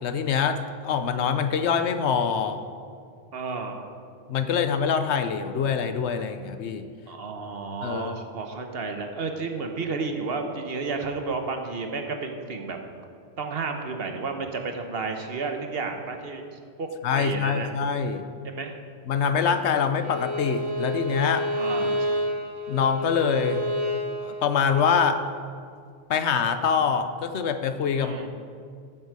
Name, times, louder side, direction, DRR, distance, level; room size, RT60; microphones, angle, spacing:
voice 1, 0.0-2.6 4.3-6.9 7.8-8.1 17.0-18.2 19.1-21.5 22.7-23.7 24.2-25.2 26.1-28.3, left 6 dB, 70° left, 9 dB, 0.9 m, -25 dB
voice 2, 3.3-3.9 7.1-12.8 13.4-16.9 17.1-17.7 18.4-18.8 21.5-22.2 27.9-28.3, right 4 dB, 60° right, 4 dB, 1.1 m, -32 dB
Bowed string instrument, 20.0-25.0, equal, 85° right, 1.6 m, -29 dB
12.5 x 8.2 x 4.8 m, 2.3 s
omnidirectional pair, 1.2 m